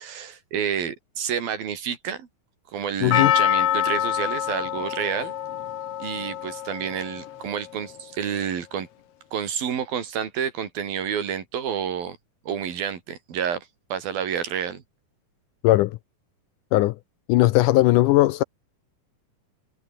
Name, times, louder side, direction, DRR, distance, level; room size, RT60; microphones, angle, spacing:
voice 1, 0.0-2.3 2.7-5.3 6.0-8.9 9.3-12.2 12.5-14.8, right 8 dB, 85° right, 4.8 m, -29 dB
voice 2, 3.0-3.3 15.6-16.0 16.7-17.0 17.3-18.4, left 17 dB, 80° left, 2.0 m, -18 dB
Percussion, 3.1-7.5 7.7-7.8, left 11 dB, 60° left, 1.7 m, -26 dB
omnidirectional pair, 4.1 m